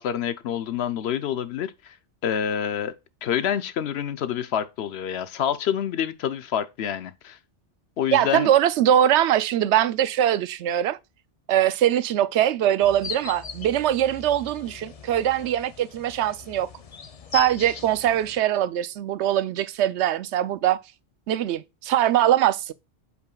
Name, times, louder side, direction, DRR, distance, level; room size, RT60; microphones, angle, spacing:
voice 1, 0.0-2.0 2.2-2.9 3.2-7.4 8.0-8.5, left 9 dB, 70° left, 0.8 m, -27 dB
voice 2, 8.1-11.0 11.5-16.7 17.3-20.8 21.3-22.7, right 11 dB, 75° right, 0.8 m, -22 dB
sound 1, 12.8-18.4, left 6 dB, 40° left, 0.6 m, -39 dB
8.1 x 5.2 x 2.3 m
omnidirectional pair, 1.2 m